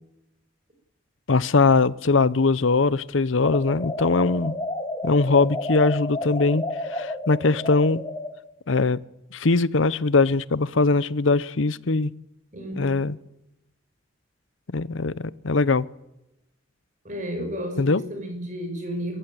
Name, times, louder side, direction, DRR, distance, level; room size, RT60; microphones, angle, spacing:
voice 1, 1.3-4.5 5.0-6.6 6.9-8.0 8.7-9.0 9.3-12.1 12.8-13.2 14.7-15.9 17.8-18.0, left 3 dB, 85° left, 19 dB, 0.8 m, -21 dB
sound 1, 3.4-8.3, left 1 dB, 25° left, 2.8 m, -31 dB
voice 2, 12.5-12.9 17.0-19.2, equal, 40° right, 4 dB, 6.5 m, -32 dB
24.5 x 15.0 x 9.5 m, 0.90 s
head